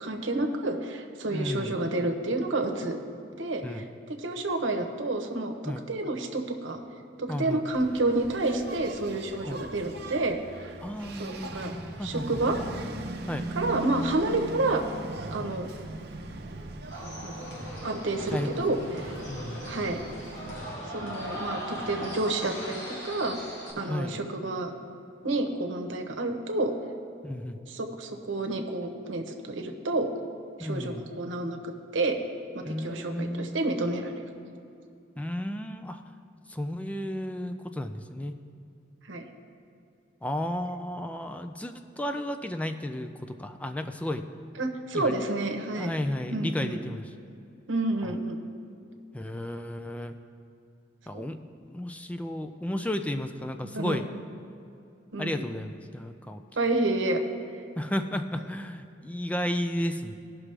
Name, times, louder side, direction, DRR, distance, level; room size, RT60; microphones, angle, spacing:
voice 1, 0.0-3.0 3.4-3.8 4.2-6.8 7.2-10.4 11.2-11.7 12.0-12.6 13.5-14.8 15.3-15.7 17.0-17.5 17.8-19.1 19.7-20.0 20.9-23.4 23.8-24.7 25.2-26.7 27.7-30.1 30.6-32.2 32.5-34.2 39.1-39.3 44.6-45.9 46.3-46.8 47.7-48.4 51.1-51.3 53.6-54.0 55.1-55.4 56.6-57.2, right 2 dB, 80° right, 4 dB, 0.9 m, -29 dB
voice 2, 1.3-1.8 3.6-3.9 5.6-5.9 7.3-7.7 9.5-9.6 10.8-12.4 13.3-13.5 15.4-15.6 18.3-19.0 19.3-19.7 23.8-24.2 27.2-27.6 30.6-31.1 32.6-33.7 35.2-36.0 36.5-38.4 40.2-44.3 44.9-45.2 45.8-47.1 48.0-48.1 49.1-50.2 51.1-54.1 55.2-56.4 57.8-60.1, left 1 dB, 5° left, 8 dB, 0.3 m, -33 dB
Engine, 7.7-20.7, right 2 dB, 55° right, 0.7 m, -40 dB
sound 1, 16.9-23.7, equal, 70° left, 2.2 m, -39 dB
17.5 x 6.0 x 3.3 m, 2.6 s
head